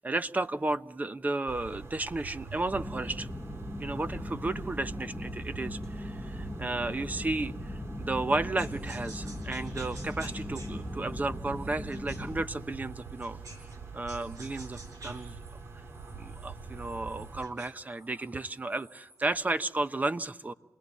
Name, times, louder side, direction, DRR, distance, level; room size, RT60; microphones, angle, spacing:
voice 1, 0.0-3.3 3.8-13.4 13.9-15.3 16.2-20.5, right 2 dB, 30° right, 11 dB, 1.0 m, -33 dB
sound 1, 1.5-17.5, right 5 dB, 55° right, 2.5 m, -44 dB
sound 2, 2.7-12.4, left 1 dB, 10° left, 1.1 m, -39 dB
sound 3, 8.6-13.8 14.1-19.4, right 2 dB, 80° right, 6.0 m, -52 dB
28.5 x 20.0 x 8.4 m, 1.1 s
cardioid pair, 70°, 6 cm